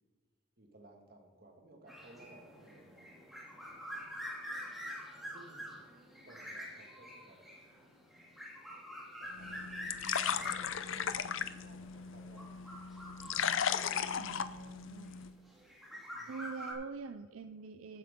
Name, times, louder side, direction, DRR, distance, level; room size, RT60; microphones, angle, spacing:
voice 1, 0.6-3.1 5.0-5.8 6.2-7.5 9.1-9.8 10.3-12.6 16.1-16.7, right 2 dB, 45° right, 3 dB, 1.8 m, -59 dB
sound 1, 1.9-14.8 15.5-16.7, equal, ahead, 2.2 m, -46 dB
sound 2, 9.3-15.3, left 7 dB, 65° left, 0.6 m, -36 dB
voice 2, 14.2-15.1 16.3-18.0, right 4 dB, 70° right, 9 dB, 0.5 m, -45 dB
15.0 x 9.5 x 3.7 m, 1.5 s
head